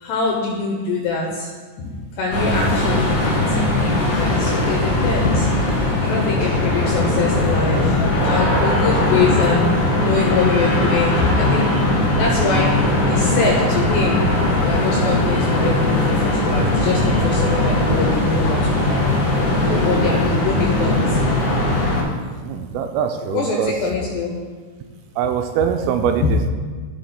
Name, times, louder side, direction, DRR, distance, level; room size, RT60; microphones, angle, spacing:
voice 1, 0.0-1.5 1.8-5.5 6.0-8.0 8.2-11.7 12.2-12.7 13.1-14.2 14.6-18.6 18.9-19.0 19.7-21.2 23.3-24.4 26.2-26.3, left 4 dB, 75° left, -1 dB, 2.5 m, -23 dB
sound 1, 2.3-22.0, left 2 dB, 45° left, 3.7 m, -19 dB
voice 2, 3.7-4.1 8.2-8.4 19.9-20.3 22.4-23.8 25.2-26.5, right 8 dB, 85° right, 5 dB, 3.0 m, -24 dB
15.0 x 7.7 x 2.2 m, 1.5 s
omnidirectional pair, 5.9 m